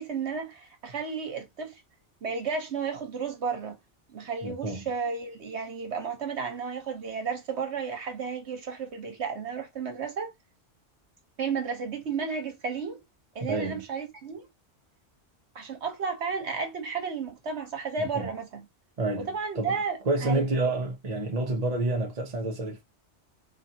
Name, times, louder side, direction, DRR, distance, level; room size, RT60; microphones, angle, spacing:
voice 1, 0.0-1.7 2.2-3.8 4.1-10.3 11.4-13.0 13.3-14.4 15.5-18.7 19.2-20.4, right 5 dB, 65° right, 1.3 m, -33 dB
voice 2, 4.4-4.8 13.5-13.8 18.0-18.3 19.0-19.3 19.6-19.7 20.0-22.8, right 2 dB, 35° right, 1.0 m, -28 dB
4.0 x 2.9 x 2.8 m
omnidirectional pair, 1.2 m